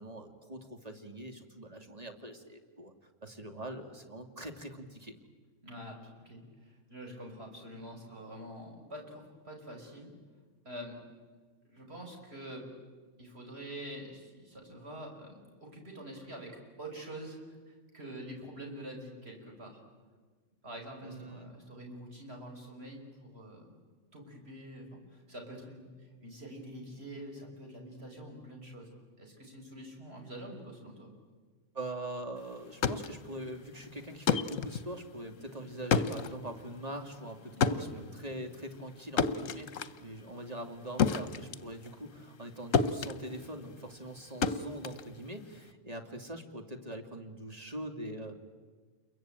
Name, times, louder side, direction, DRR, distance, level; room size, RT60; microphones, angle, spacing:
voice 1, 0.0-2.9 3.2-5.2 21.0-21.6 31.7-48.4, right 1 dB, 25° right, 5 dB, 2.5 m, -43 dB
voice 2, 5.6-10.1 10.6-11.0 11.7-12.7 13.2-19.8 20.6-23.7 24.1-28.9 29.2-31.1 37.6-38.0, right 1 dB, 45° right, 1 dB, 5.9 m, -46 dB
sound 1, 32.6-42.5 42.7-45.7, left 6 dB, 65° left, 1.3 m, -32 dB
29.0 x 22.5 x 9.0 m, 1.5 s
omnidirectional pair, 1.5 m